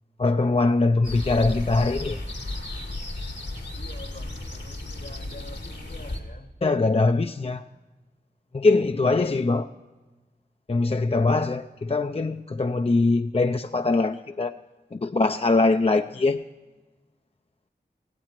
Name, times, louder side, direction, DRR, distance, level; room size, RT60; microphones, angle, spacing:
voice 1, 0.2-2.2 6.6-7.7 8.5-9.7 10.7-14.6 14.9-16.4, left 3 dB, 35° left, 0.4 m, -22 dB
sound 1, 1.0-6.2, left 1 dB, 85° left, 2.1 m, -34 dB
voice 2, 3.7-6.5, left 2 dB, 55° left, 1.2 m, -46 dB
16.5 x 16.5 x 4.6 m
wide cardioid pair, 50°, 18 cm